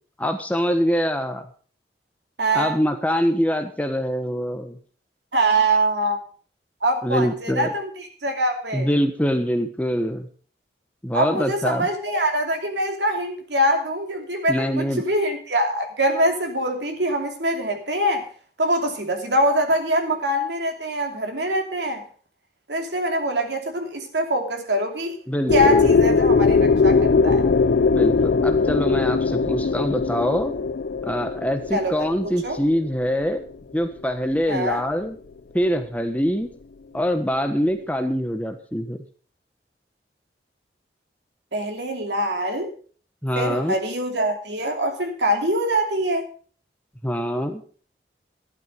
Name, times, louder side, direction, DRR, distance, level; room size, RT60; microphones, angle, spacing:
voice 1, 0.2-1.5 2.5-4.8 7.0-7.7 8.7-10.3 11.0-11.9 14.5-15.0 25.3-25.9 27.9-30.5 31.0-33.4 33.7-35.2 35.5-36.5 36.9-39.0 43.2-43.8 47.0-47.6, equal, 10° left, 6 dB, 1.2 m, -24 dB
voice 2, 2.4-2.8 5.3-6.2 6.8-8.9 11.1-18.3 18.6-22.0 22.7-25.2 25.5-27.4 31.7-31.9 32.2-32.6 34.5-34.8 41.5-42.7 43.4-46.3, right 1 dB, 80° right, 4 dB, 2.9 m, -24 dB
sound 1, 25.5-33.3, left 4 dB, 65° left, 0.5 m, -20 dB
13.0 x 11.5 x 5.2 m, 0.43 s
head